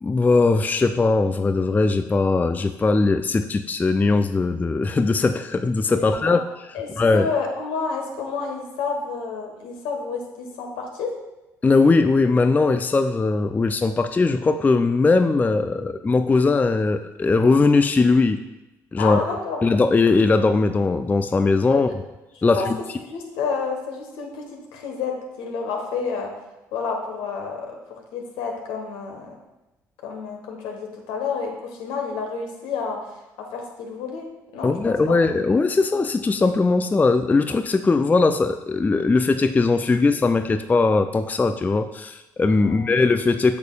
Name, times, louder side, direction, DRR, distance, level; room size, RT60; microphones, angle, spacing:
voice 1, 0.0-6.4 7.0-7.3 11.6-18.4 18.9-19.2 19.6-21.9 22.4-22.8 34.6-43.6, left 3 dB, 20° left, 9 dB, 0.3 m, -20 dB
voice 2, 5.9-6.4 6.7-11.1 19.0-19.6 21.7-21.9 22.3-22.7 23.0-26.3 26.7-27.8 28.1-29.4 30.0-33.2 33.5-34.3 34.5-35.2 42.6-42.9, left 5 dB, 70° left, 2 dB, 1.2 m, -30 dB
8.3 x 6.5 x 2.3 m, 1.0 s
hypercardioid pair, 55°, 9 cm